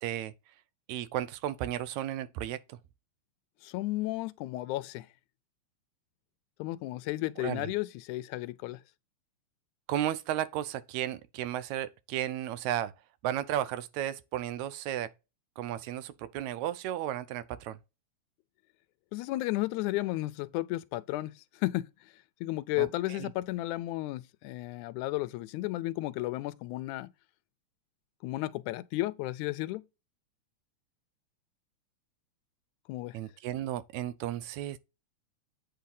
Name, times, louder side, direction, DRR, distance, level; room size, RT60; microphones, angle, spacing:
voice 1, 0.0-0.3 0.9-2.8 7.4-7.7 9.9-12.9 13.2-15.1 15.6-17.8 22.8-23.3 33.1-34.8, right 12 dB, 80° right, 1.8 m, -34 dB
voice 2, 3.6-5.1 6.6-8.8 19.1-27.1 28.2-29.9 32.9-33.2, left 18 dB, 85° left, 2.0 m, -33 dB
8.4 x 3.3 x 5.3 m
omnidirectional pair, 3.4 m